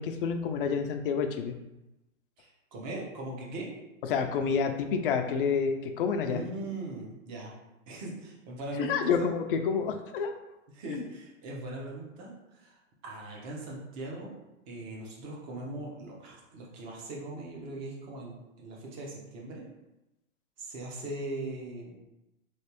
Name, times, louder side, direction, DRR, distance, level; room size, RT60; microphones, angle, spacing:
voice 1, 0.0-1.5 4.1-6.4 8.8-10.3 10.9-11.0, left 6 dB, 45° left, 6 dB, 0.4 m, -28 dB
voice 2, 2.4-3.7 6.2-7.5 7.9-9.3 10.7-14.3 14.7-19.6 20.6-21.9, right 2 dB, 35° right, -2 dB, 1.0 m, -40 dB
3.2 x 3.0 x 2.9 m, 0.96 s
hypercardioid pair, 130°, 40 cm